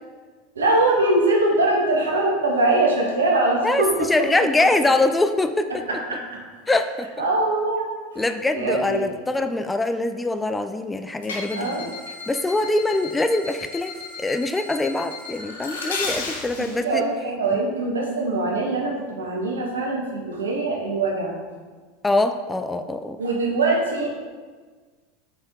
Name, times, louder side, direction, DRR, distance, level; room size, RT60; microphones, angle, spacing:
voice 1, 0.5-4.1 5.9-6.4 7.2-7.9 8.1-8.2 8.5-9.1 11.5-11.9 16.6-21.4 23.2-24.1, right 2 dB, 80° right, -1 dB, 1.3 m, -22 dB
voice 2, 3.6-5.7 6.7-7.2 8.2-11.8 12.3-13.9 14.2-17.0 17.5-17.6 22.0-23.2, left 2 dB, 10° left, 9 dB, 0.4 m, -23 dB
sound 1, 11.2-16.8, left 3 dB, 75° left, 1.0 m, -34 dB
6.9 x 4.4 x 3.7 m, 1.4 s
figure-of-eight pair, 80°, 0 cm